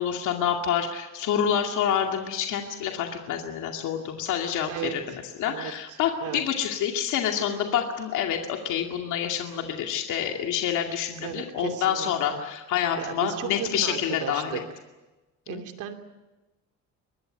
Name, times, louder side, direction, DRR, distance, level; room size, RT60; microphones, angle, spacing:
voice 1, 0.0-5.0 5.4-14.6 15.5-15.6, left 9 dB, 80° left, 2 dB, 2.4 m, -27 dB
voice 2, 4.7-5.2 5.4-6.4 11.2-12.5 13.0-14.6 15.5-15.9, right 9 dB, 90° right, 6 dB, 2.8 m, -35 dB
24.5 x 20.0 x 9.2 m, 1.1 s
cardioid pair, 165°, 30 cm